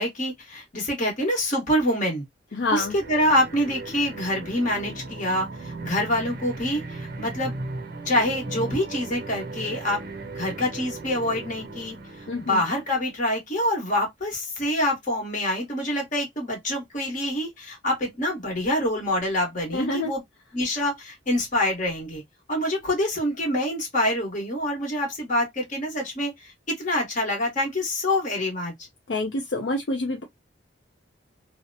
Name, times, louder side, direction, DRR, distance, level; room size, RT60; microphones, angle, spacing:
voice 1, 0.0-2.2 2.7-7.5 8.0-10.0 10.3-12.0 12.4-20.2 20.5-22.2 22.5-28.7, left 1 dB, 40° left, 1.2 m, -26 dB
voice 2, 2.5-2.9 12.3-12.6 19.7-20.1 29.1-30.2, left 2 dB, 65° left, 0.5 m, -27 dB
sound 1, 2.6-13.1, right 2 dB, 50° right, 0.5 m, -37 dB
2.8 x 2.0 x 2.5 m
head